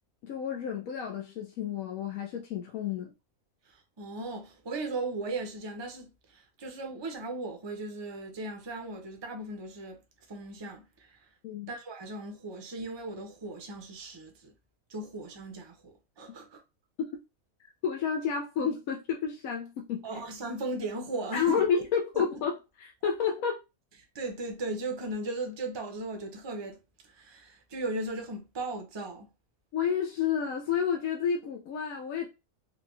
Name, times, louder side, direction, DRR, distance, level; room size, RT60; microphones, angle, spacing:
voice 1, 0.2-3.1 11.4-11.7 17.8-20.0 21.3-22.5 22.8-23.6 29.7-32.3, left 7 dB, 90° left, 1.1 m, -30 dB
voice 2, 3.6-10.0 10.3-11.3 11.7-14.5 14.9-16.6 20.0-21.7 22.1-22.4 24.1-29.3, right 2 dB, 30° right, 0.5 m, -37 dB
3.9 x 2.2 x 3.0 m
omnidirectional pair, 1.5 m